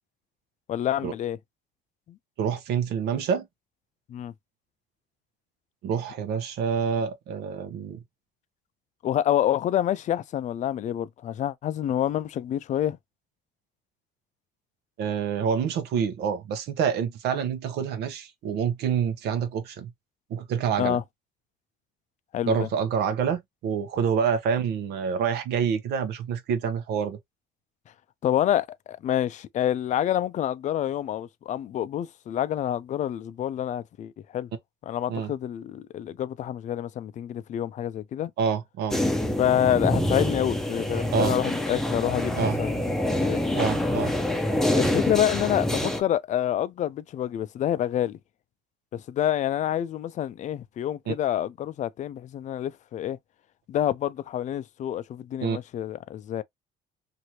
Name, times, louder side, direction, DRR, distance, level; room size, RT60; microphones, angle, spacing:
voice 1, 0.7-1.4 2.1-2.2 4.1-4.3 9.0-13.0 20.8-21.0 22.3-22.7 28.2-34.5 34.9-38.3 39.4-42.8 43.2-43.4 44.7-48.2 48.9-53.2 53.7-56.4, left 11 dB, 45° left, 0.4 m, -27 dB
voice 2, 2.4-3.5 5.8-8.0 15.0-19.9 20.3-21.0 22.4-27.2 35.1-35.3 38.4-39.0 41.1-41.3 42.4-42.6 43.5-44.1 51.1-51.2 55.4-55.6, right 7 dB, 75° right, 0.8 m, -27 dB
sound 1, 38.9-46.0, left 1 dB, ahead, 0.6 m, -26 dB
2.8 x 2.6 x 2.9 m
cardioid pair, 110°, 17 cm